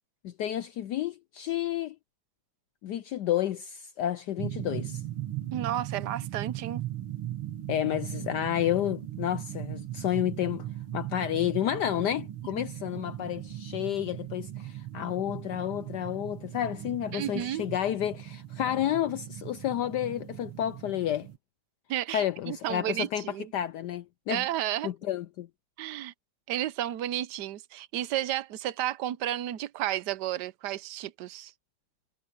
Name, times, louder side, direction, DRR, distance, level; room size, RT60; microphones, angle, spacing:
voice 1, 0.2-2.0 2.8-5.0 7.7-10.7 10.9-21.3 22.1-23.2 23.5-24.4 24.8-25.5, left 11 dB, 75° left, 0.9 m, -30 dB
sound 1, 4.4-21.4, right 13 dB, 85° right, 2.5 m, -38 dB
voice 2, 5.5-6.8 17.1-17.7 21.9-23.5 24.3-24.9 25.8-26.1 26.5-31.5, right 12 dB, 65° right, 1.2 m, -32 dB
omnidirectional pair, 2.4 m